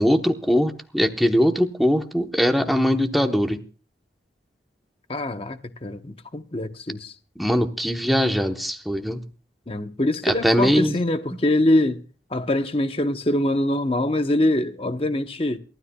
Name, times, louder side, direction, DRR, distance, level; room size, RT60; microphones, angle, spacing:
voice 1, 0.0-3.6 7.4-9.2 10.2-11.0, equal, ahead, 0.9 m, -21 dB
voice 2, 5.1-7.1 9.7-12.0 12.3-15.6, left 1 dB, 30° left, 0.9 m, -24 dB
28.0 x 13.0 x 2.3 m
head